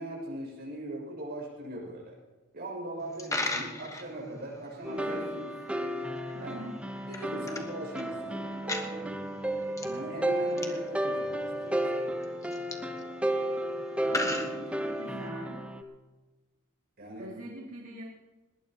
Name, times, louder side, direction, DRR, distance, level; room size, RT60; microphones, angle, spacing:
voice 1, 0.0-2.1 2.5-5.3 6.4-6.6 7.1-12.1 14.1-14.6 17.0-17.3, right 1 dB, 45° right, -2 dB, 6.5 m, -40 dB
Coin (dropping), 3.0-15.3, left 2 dB, 15° left, 1.2 m, -40 dB
sound 1, 4.8-15.8, right 1 dB, 5° right, 0.9 m, -33 dB
voice 2, 4.9-5.6 6.3-6.8 14.0-15.6 17.2-18.0, right 1 dB, 85° right, -3 dB, 2.4 m, -44 dB
20.5 x 19.0 x 3.0 m, 1.2 s
head